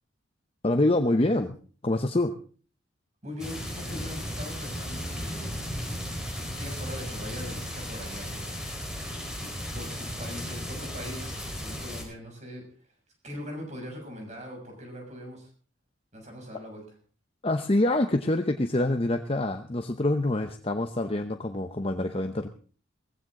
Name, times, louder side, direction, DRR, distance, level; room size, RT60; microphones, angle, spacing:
voice 1, 0.6-1.6 1.8-2.3 17.4-22.5, left 1 dB, 30° left, 6 dB, 0.8 m, -26 dB
voice 2, 3.2-5.5 6.3-8.5 9.7-12.9 13.2-15.5 16.1-17.0, left 1 dB, 35° right, 1 dB, 6.8 m, -41 dB
sound 1, 3.4-12.0, equal, 5° right, 4.5 m, -35 dB
18.5 x 15.5 x 3.8 m, 0.41 s
head